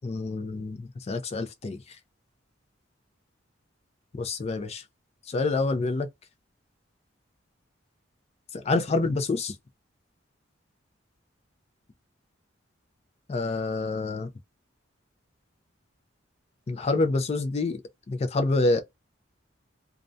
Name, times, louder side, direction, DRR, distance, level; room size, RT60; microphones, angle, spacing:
voice 1, 0.0-2.0 4.1-4.8 5.3-6.1 8.5-9.6 13.3-14.3 16.7-17.8 18.1-18.8, left 3 dB, 35° left, 0.4 m, -27 dB
2.3 x 2.1 x 2.5 m
head